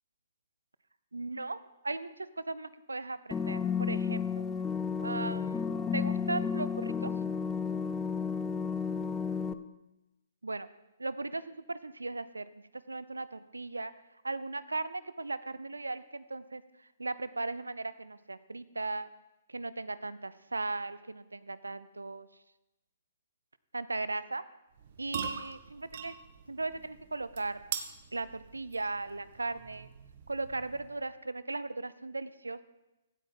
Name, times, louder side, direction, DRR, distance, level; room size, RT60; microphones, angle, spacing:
voice 1, 1.1-4.4 5.0-7.1 10.4-10.7 11.0-13.9 14.2-19.1 19.5-22.3 23.7-24.4 25.0-26.2 26.5-27.6 28.1-29.9 30.3-32.6, right 3 dB, 90° right, 16 dB, 0.6 m, -37 dB
sound 1, 3.3-9.5, left 6 dB, 15° left, 0.5 m, -32 dB
sound 2, 24.7-31.1, right 8 dB, 55° right, 1.0 m, -43 dB
16.0 x 8.5 x 3.9 m, 0.97 s
figure-of-eight pair, 125°, 0 cm